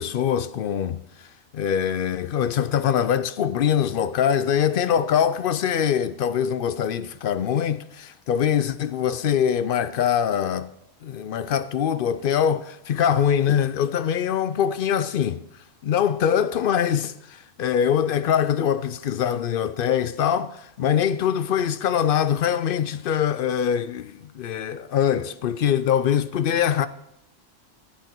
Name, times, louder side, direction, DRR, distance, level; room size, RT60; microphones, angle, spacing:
voice 1, 0.0-10.7 11.0-15.4 15.8-26.9, left 9 dB, 65° left, 0.5 m, -23 dB
14.0 x 8.3 x 4.5 m
omnidirectional pair, 1.3 m